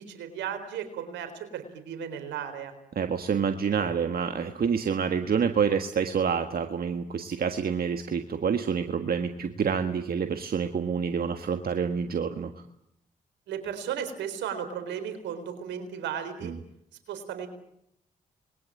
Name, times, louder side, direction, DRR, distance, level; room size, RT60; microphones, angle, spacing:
voice 1, 0.0-2.7 13.5-16.5 17.1-17.5, right 8 dB, 80° right, 8 dB, 4.2 m, -35 dB
voice 2, 2.9-12.5 16.4-16.6, right 6 dB, 55° right, 7 dB, 1.6 m, -27 dB
27.0 x 21.5 x 8.9 m, 0.76 s
hypercardioid pair, 40°, 18 cm